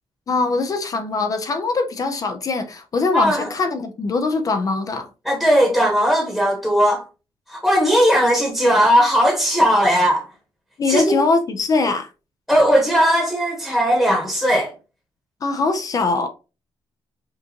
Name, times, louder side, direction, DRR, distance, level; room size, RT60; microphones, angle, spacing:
voice 1, 0.3-5.1 10.8-12.1 15.4-16.3, left 3 dB, 40° left, 0.5 m, -22 dB
voice 2, 3.1-3.5 5.2-7.0 7.5-10.2 10.9-11.2 12.5-14.7, equal, ahead, 1.1 m, -17 dB
5.1 x 2.5 x 2.8 m
cardioid pair, 145°, 10 cm